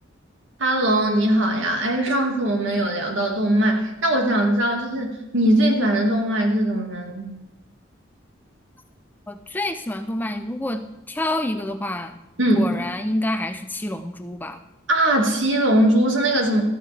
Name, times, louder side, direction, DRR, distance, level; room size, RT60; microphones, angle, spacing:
voice 1, 0.6-7.3 12.4-12.8 14.9-16.6, right 1 dB, 75° right, 2 dB, 2.0 m, -20 dB
voice 2, 9.3-10.8 11.1-12.2 12.6-14.6, left 1 dB, 10° left, 7 dB, 0.5 m, -27 dB
13.5 x 12.5 x 3.4 m, 0.95 s
head